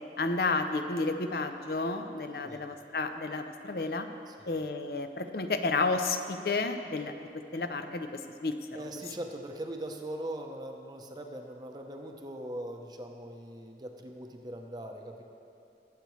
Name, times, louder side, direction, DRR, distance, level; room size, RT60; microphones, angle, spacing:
voice 1, 0.2-4.1 4.5-8.9, left 3 dB, 55° left, 7 dB, 0.5 m, -31 dB
voice 2, 8.7-15.2, right 1 dB, 25° right, 3 dB, 0.7 m, -41 dB
19.5 x 8.2 x 3.1 m, 2.7 s
head